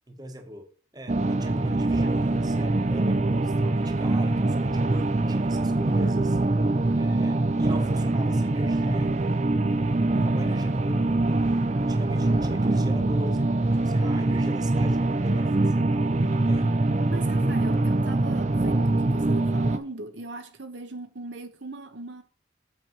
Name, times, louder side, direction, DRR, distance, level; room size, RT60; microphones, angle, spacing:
voice 1, 0.1-0.7 0.9-6.4 7.0-9.7 10.2-11.4 11.8-16.9 17.7-17.8, right 1 dB, 20° right, 1.3 m, -39 dB
sound 1, 1.1-19.8, right 2 dB, 35° right, 0.6 m, -24 dB
voice 2, 9.6-10.3 17.1-22.2, right 2 dB, 70° right, 1.1 m, -39 dB
7.9 x 7.1 x 4.5 m
head